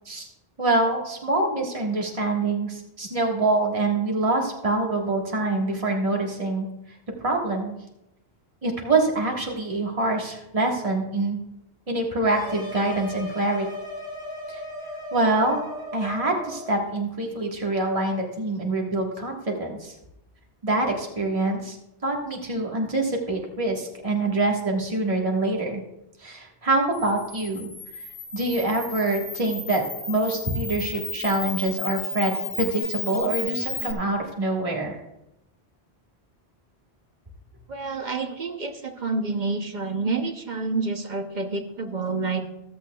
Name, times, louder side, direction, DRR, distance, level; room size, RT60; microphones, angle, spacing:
voice 1, 0.6-6.7 7.2-7.7 8.6-11.4 11.9-13.7 14.5-14.6 15.1-15.6 15.9-19.9 20.6-21.8 22.0-25.8 26.2-27.7 27.9-28.0 28.3-29.8 30.1-35.0, right 2 dB, 30° right, 0 dB, 1.6 m, -25 dB
sound 1, 12.3-16.8, left 1 dB, 5° right, 4.9 m, -36 dB
Camera, 26.9-33.9, left 4 dB, 40° left, 1.2 m, -34 dB
voice 2, 37.7-42.5, right 3 dB, 45° right, 6 dB, 0.9 m, -28 dB
14.5 x 13.0 x 2.3 m, 0.88 s
omnidirectional pair, 1.1 m